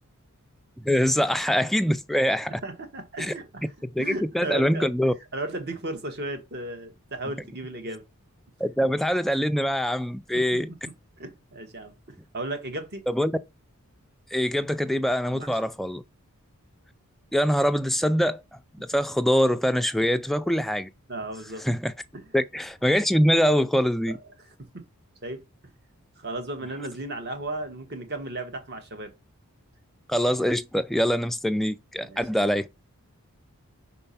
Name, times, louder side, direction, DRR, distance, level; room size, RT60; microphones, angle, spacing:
voice 1, 0.8-2.6 3.2-3.3 3.9-5.1 8.6-10.7 13.1-13.3 14.3-16.0 17.3-18.4 18.8-20.9 21.6-21.9 22.3-24.2 30.1-32.7, equal, ahead, 0.3 m, -24 dB
voice 2, 2.6-3.7 4.0-4.9 5.3-8.0 10.3-10.6 11.2-13.1 15.3-15.5 21.1-21.7 22.1-22.2 24.6-24.7 25.2-25.4 26.2-29.1 32.0-32.4, right 2 dB, 45° right, 1.3 m, -35 dB
4.5 x 4.1 x 5.6 m
head